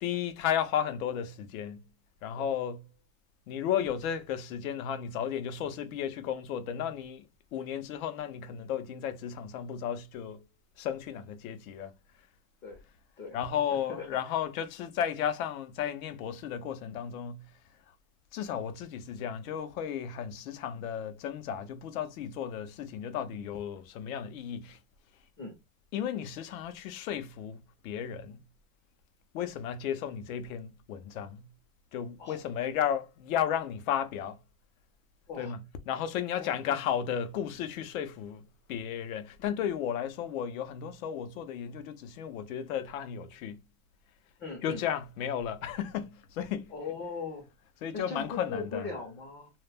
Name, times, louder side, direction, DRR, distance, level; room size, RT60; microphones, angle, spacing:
voice 1, 0.0-1.8 2.2-2.9 3.5-7.3 7.5-10.4 10.8-11.9 13.3-17.5 18.3-24.8 25.9-28.4 29.3-31.5 31.9-34.4 35.4-43.6 44.6-46.7 47.8-48.9, left 9 dB, 65° left, 0.6 m, -34 dB
voice 2, 36.3-36.8 44.4-44.8 46.7-47.4 47.9-49.5, left 4 dB, 25° left, 0.6 m, -39 dB
2.2 x 2.0 x 3.2 m
supercardioid pair, 150°, 44 cm